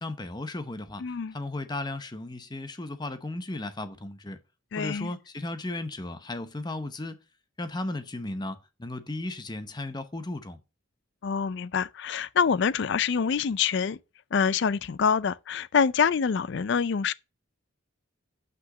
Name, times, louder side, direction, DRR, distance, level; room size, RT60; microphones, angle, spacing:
voice 1, 0.0-4.4 4.8-7.2 7.6-10.6, left 2 dB, 20° left, 0.7 m, -35 dB
voice 2, 1.0-1.4 4.7-5.1 11.2-14.0 14.3-17.1, left 6 dB, 55° left, 0.4 m, -26 dB
6.1 x 5.6 x 6.1 m
head